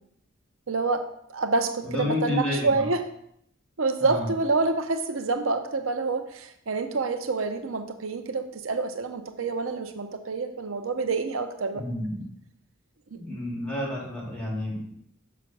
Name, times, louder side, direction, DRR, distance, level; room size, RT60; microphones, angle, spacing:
voice 1, 0.7-3.0 3.8-11.8 13.1-13.2, right 3 dB, 85° right, 7 dB, 0.7 m, -27 dB
voice 2, 1.8-2.8 4.0-4.3 11.7-12.2 13.2-15.0, left 1 dB, 5° left, -6 dB, 2.7 m, -30 dB
6.1 x 6.1 x 6.0 m, 0.72 s
head